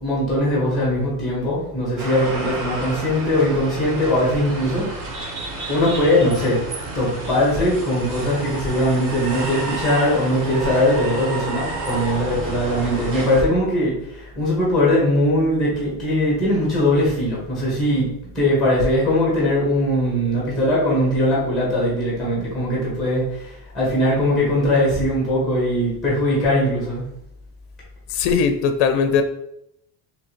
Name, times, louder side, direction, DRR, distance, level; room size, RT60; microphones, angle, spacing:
voice 1, 0.0-5.2 5.7-6.6 6.9-18.1 18.3-27.1, left 1 dB, ahead, -6 dB, 1.2 m, -20 dB
sound 1, 2.0-13.4, right 2 dB, 40° right, 0.9 m, -30 dB
voice 2, 28.1-29.2, left 6 dB, 60° left, 8 dB, 0.5 m, -19 dB
4.9 x 2.8 x 2.9 m, 0.80 s
cardioid pair, 170°, 45 cm